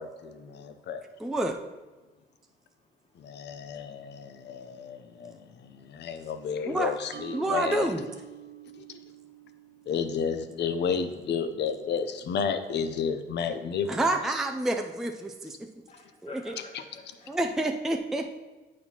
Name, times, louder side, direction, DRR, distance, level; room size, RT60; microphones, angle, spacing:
voice 1, 0.0-1.0 3.2-7.9 8.7-8.8 9.9-13.9, left 6 dB, 60° left, 9 dB, 0.6 m, -32 dB
voice 2, 1.2-1.6 6.7-6.9 7.3-8.0 13.9-15.6 16.2-16.5 17.3-18.3, right 1 dB, ahead, 4 dB, 0.3 m, -28 dB
Mallet percussion, 7.1-10.4, right 11 dB, 65° right, 0.5 m, -47 dB
voice 3, 8.6-9.4 9.7-9.9 15.9-16.9 17.2-17.4, left 3 dB, 30° left, 0 dB, 1.4 m, -50 dB
9.0 x 4.2 x 2.9 m, 1.2 s
cardioid pair, 90°, 20 cm